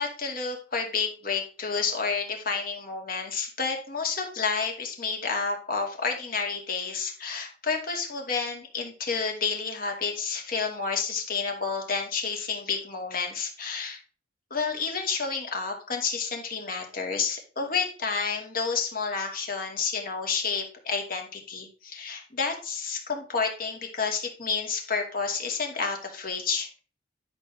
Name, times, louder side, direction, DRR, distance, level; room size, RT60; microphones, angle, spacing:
voice 1, 0.0-14.0 14.5-26.7, left 5 dB, 50° left, 2 dB, 2.3 m, -30 dB
11.0 x 6.6 x 3.5 m, 0.38 s
head